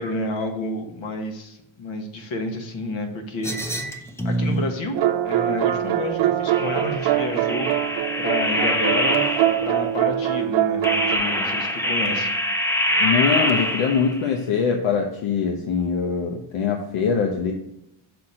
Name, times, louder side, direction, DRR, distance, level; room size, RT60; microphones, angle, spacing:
voice 1, 0.0-3.7 4.2-5.0 5.2-7.7 8.2-12.3, left 2 dB, 65° left, 4 dB, 1.5 m, -30 dB
sound 1, 3.4-4.7 6.5-9.8 10.8-14.2, equal, 5° left, 0.5 m, -24 dB
sound 2, 4.9-11.2, right 12 dB, 60° right, 0.7 m, -23 dB
voice 2, 13.0-17.5, left 6 dB, 80° left, 3 dB, 1.0 m, -23 dB
6.2 x 4.3 x 4.9 m, 0.81 s
cardioid pair, 130°, 49 cm